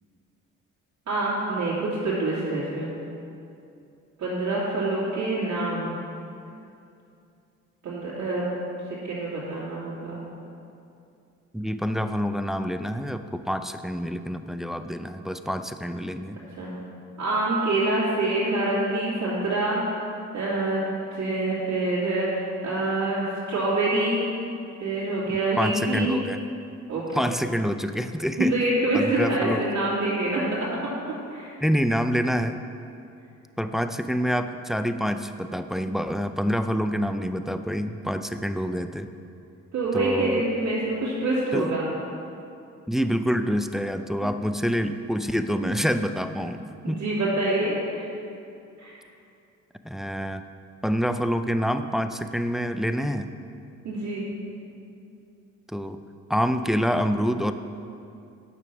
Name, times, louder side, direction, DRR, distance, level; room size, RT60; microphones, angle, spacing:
voice 1, 1.1-2.9 4.2-5.9 7.8-8.5 8.9-10.2 16.6-16.7 17.2-20.0 20.3-20.8 21.1-24.2 24.8-26.2 26.9-27.3 28.4-30.9 31.3-31.5 39.7-41.8 45.6-45.7 46.8-48.1 48.8-49.0 53.8-54.3, right 2 dB, 65° right, -9 dB, 2.6 m, -26 dB
voice 2, 11.5-16.4 25.6-26.4 27.1-28.5 28.9-29.6 31.6-32.6 33.6-39.1 39.9-40.4 41.5-41.7 42.9-47.0 49.8-50.4 50.8-53.3 55.7-56.0 56.3-57.5, equal, ahead, 9 dB, 0.4 m, -27 dB
9.7 x 6.9 x 5.9 m, 2.6 s
cardioid pair, 90°, 30 cm